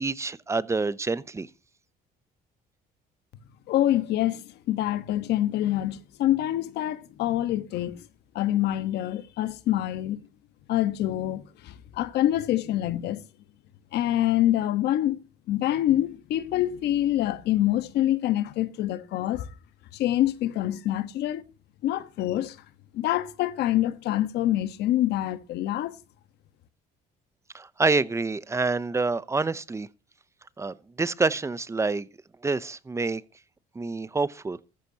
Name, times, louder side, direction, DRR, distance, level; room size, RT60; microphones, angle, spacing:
voice 1, 0.0-1.5 27.5-29.9 30.6-32.1 32.4-33.2 33.7-34.6, right 3 dB, 15° right, 0.7 m, -27 dB
voice 2, 3.7-8.0 8.3-10.2 10.7-13.2 13.9-15.2 15.5-19.5 19.9-21.4 21.8-22.6 22.9-25.9, left 13 dB, 80° left, 1.3 m, -26 dB
14.0 x 14.0 x 2.9 m
cardioid pair, 110°, 17 cm